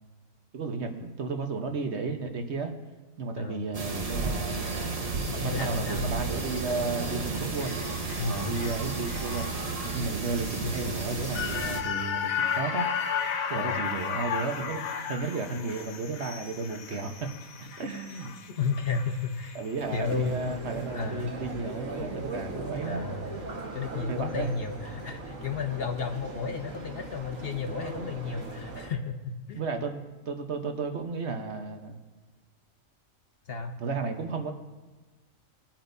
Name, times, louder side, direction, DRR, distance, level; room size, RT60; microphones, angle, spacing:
voice 1, 0.5-2.7 3.2-4.7 5.4-7.8 8.2-13.1 13.5-17.3 17.6-18.3 19.5-23.0 24.1-24.5 29.5-32.0 33.8-34.5, right 4 dB, 55° right, 5 dB, 1.2 m, -33 dB
sound 1, 3.7-11.8, right 3 dB, 30° right, 0.9 m, -32 dB
voice 2, 5.2-6.1 8.2-8.5 10.6-10.8 13.5-13.8 18.5-19.6 19.9-20.6 20.9-21.3 22.8-23.4 23.7-29.6 33.5-33.7, left 5 dB, 55° left, 6 dB, 0.8 m, -33 dB
sound 2, 7.6-19.9 20.3-20.4, left 7 dB, 85° left, 1.3 m, -34 dB
sound 3, 19.8-28.9, right 2 dB, 75° right, 1.9 m, -39 dB
20.0 x 8.8 x 2.7 m, 1.2 s
omnidirectional pair, 1.4 m